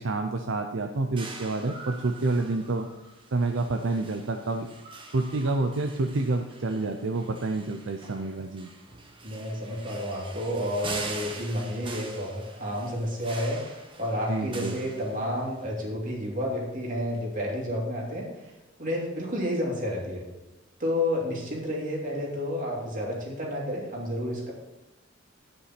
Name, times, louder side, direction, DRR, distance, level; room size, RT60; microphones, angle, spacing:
voice 1, 0.0-2.9 3.3-4.7 5.1-8.7 14.3-14.7, right 3 dB, 65° right, 4 dB, 0.6 m, -28 dB
sound 1, 1.2-15.6, right 3 dB, 25° right, 1.1 m, -43 dB
voice 2, 9.2-18.3 18.8-20.2 20.8-24.5, left 1 dB, 40° right, -2 dB, 2.5 m, -30 dB
9.9 x 5.5 x 5.9 m, 0.98 s
head